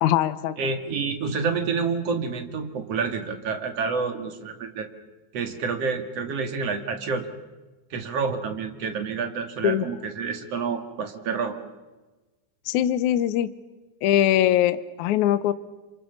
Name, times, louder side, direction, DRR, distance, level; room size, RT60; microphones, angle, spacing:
voice 1, 0.0-0.6 9.6-9.8 12.7-13.5 14.0-15.5, left 12 dB, 75° left, 13 dB, 1.8 m, -21 dB
voice 2, 0.6-4.9 5.3-7.3 7.9-11.6, right 5 dB, 45° right, 5 dB, 2.7 m, -28 dB
28.5 x 26.5 x 7.2 m, 1.2 s
omnidirectional pair, 4.5 m